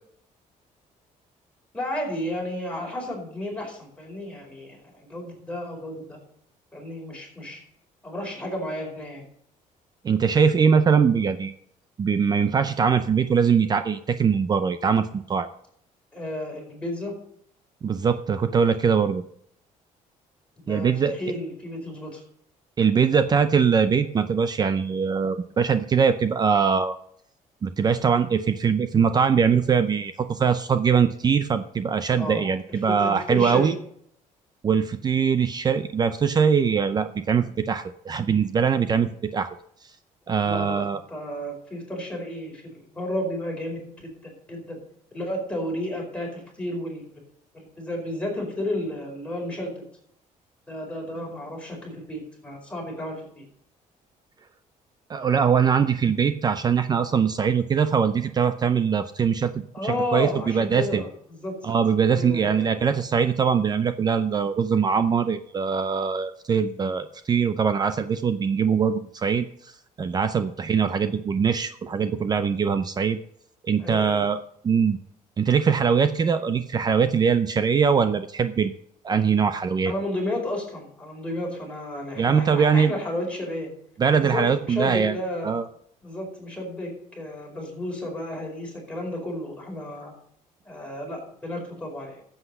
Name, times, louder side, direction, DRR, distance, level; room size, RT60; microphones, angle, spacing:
voice 1, 1.7-6.2 6.7-7.6 8.0-9.2 16.1-17.1 20.7-22.2 32.2-32.4 32.7-33.8 40.4-42.6 42.9-44.8 45.1-47.2 47.5-49.7 50.7-53.4 59.7-61.7 62.1-62.8 73.8-74.2 79.8-83.7 84.2-85.5 86.0-90.1 90.6-92.2, left 1 dB, 10° left, -1 dB, 4.7 m, -32 dB
voice 2, 10.0-11.5 12.0-15.5 17.8-19.2 20.7-21.2 22.8-27.0 27.6-33.7 34.6-39.6 40.3-41.0 55.1-61.0 61.6-69.7 70.0-73.2 73.6-74.4 74.6-75.0 75.4-78.8 79.0-79.9 82.2-82.9 84.0-85.1 85.4-85.7, right 6 dB, 30° right, 11 dB, 0.6 m, -22 dB
14.0 x 8.0 x 5.4 m, 0.67 s
cardioid pair, 150°, 14 cm